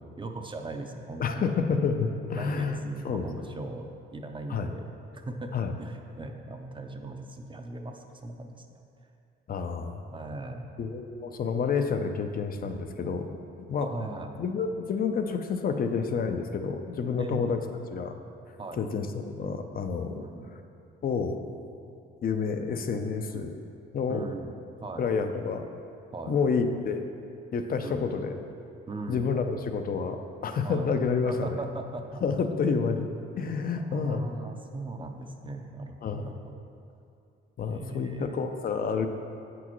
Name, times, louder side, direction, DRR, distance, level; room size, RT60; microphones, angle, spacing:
voice 1, 0.2-1.5 2.3-3.9 4.1-4.8 5.1-5.5 5.8-8.7 10.1-10.8 13.8-14.4 17.2-17.6 18.6-18.8 20.1-20.5 23.3-23.5 24.1-24.5 24.8-25.1 26.1-26.4 27.8-28.1 28.9-29.3 30.6-30.9 31.2-32.2 33.8-36.6 37.7-38.5, right 2 dB, 25° right, 4 dB, 0.5 m, -39 dB
voice 2, 1.2-2.8 3.0-3.2 4.5-4.7 5.5-5.7 9.5-10.0 10.8-13.4 13.7-13.9 14.4-17.6 17.9-18.1 18.8-19.1 19.3-20.2 21.0-21.4 22.2-23.5 23.9-24.2 25.0-25.7 26.3-27.0 27.5-28.3 29.1-30.2 30.4-31.5 32.2-33.1 33.3-34.3 36.0-36.3 37.6-39.1, left 5 dB, 45° left, 7 dB, 0.6 m, -29 dB
7.9 x 6.1 x 3.1 m, 2.6 s
cardioid pair, 90°, 20 cm